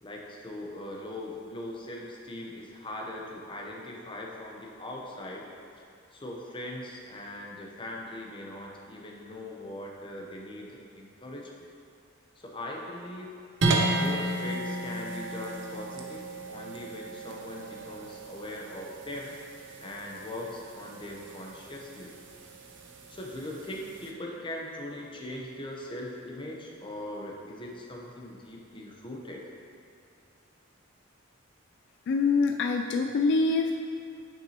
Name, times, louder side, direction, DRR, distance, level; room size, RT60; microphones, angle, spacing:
voice 1, 0.0-5.5 6.1-11.7 12.4-13.3 13.9-19.4 19.8-22.1 23.1-29.5, left 1 dB, 25° left, -1 dB, 0.8 m, -40 dB
sound 1, 13.6-24.1, right 2 dB, 60° right, 0.7 m, -34 dB
voice 2, 32.1-33.7, left 4 dB, 60° left, 4 dB, 0.3 m, -25 dB
8.9 x 6.0 x 2.9 m, 2.5 s
head